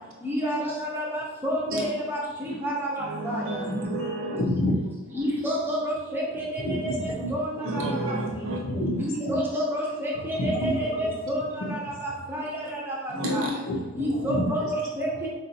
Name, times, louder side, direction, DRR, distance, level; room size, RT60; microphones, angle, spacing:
voice 1, 0.2-3.4 5.1-7.6 9.0-11.4 12.3-12.8 13.3-13.4 14.0-15.3, equal, 10° right, -4 dB, 0.7 m, -29 dB
voice 2, 3.0-4.4 7.6-8.6 13.1-13.5, right 1 dB, 65° right, -1 dB, 0.8 m, -30 dB
voice 3, 4.3-4.8 6.6-7.3 7.7-7.9 8.2-9.3 10.4-10.7 11.0-11.1 13.7-14.4, left 1 dB, 65° left, -4 dB, 0.8 m, -29 dB
4.1 x 2.5 x 2.6 m, 1.1 s
head